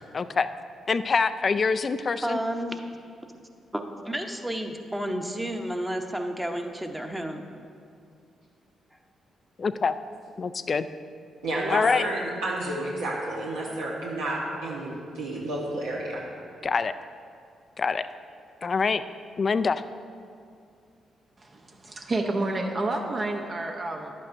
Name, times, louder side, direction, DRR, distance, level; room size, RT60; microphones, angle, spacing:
voice 1, 0.1-0.5 0.9-2.4 9.6-9.9 10.4-10.9 11.7-12.1 16.6-16.9 17.8-18.1 18.6-19.0 19.4-19.8, left 5 dB, 45° left, 12 dB, 0.3 m, -25 dB
voice 2, 2.2-2.8 3.2-3.3 3.7-7.4, right 1 dB, 10° right, 4 dB, 0.9 m, -31 dB
voice 3, 11.4-16.2, right 1 dB, 85° right, -5 dB, 1.1 m, -30 dB
voice 4, 21.4-24.1, right 2 dB, 45° right, 2 dB, 0.8 m, -29 dB
11.0 x 8.4 x 2.6 m, 2.3 s
hypercardioid pair, 50°, 0 cm